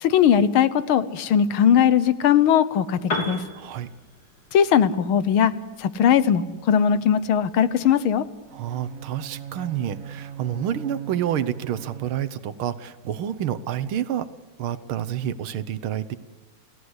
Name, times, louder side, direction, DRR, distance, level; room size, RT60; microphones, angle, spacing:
voice 1, 0.0-3.4 4.5-5.5 5.8-8.3, left 8 dB, 85° left, 15 dB, 1.8 m, -19 dB
Piano, 3.0-10.8, left 2 dB, 50° left, 3.4 m, -39 dB
voice 2, 3.6-3.9 8.5-14.3 14.6-16.2, right 10 dB, 85° right, 13 dB, 1.9 m, -28 dB
Bowed string instrument, 8.5-12.7, right 8 dB, 50° right, 1.3 m, -39 dB
29.5 x 17.0 x 8.1 m, 1.2 s
omnidirectional pair, 2.2 m